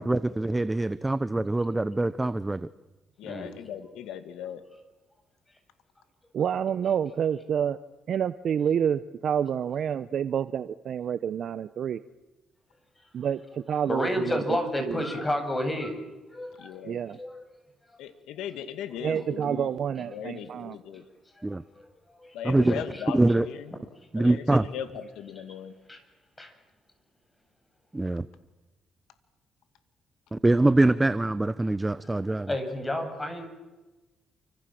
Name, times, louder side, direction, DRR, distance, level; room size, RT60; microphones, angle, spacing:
voice 1, 0.0-2.7 21.4-21.6 22.4-22.8 23.1-23.5 24.1-24.7 27.9-28.3 30.3-32.5, right 2 dB, 15° right, 15 dB, 0.9 m, -24 dB
voice 2, 3.2-4.6 16.6-17.0 18.0-19.7 20.1-21.0 22.3-23.7 24.2-25.7, left 9 dB, 90° left, 10 dB, 2.3 m, -38 dB
voice 3, 6.3-7.8 8.1-12.0 13.1-15.0 16.8-17.2 19.0-20.8, right 8 dB, 60° right, 14 dB, 0.9 m, -28 dB
voice 4, 13.9-15.9 16.3-16.8 17.2-17.4 21.4-21.9 22.2-23.0 25.9-26.0 26.4-26.5 32.2-33.5, left 1 dB, 15° left, 6 dB, 7.4 m, -31 dB
29.0 x 26.0 x 7.8 m, 1.1 s
cardioid pair, 90°, 0 cm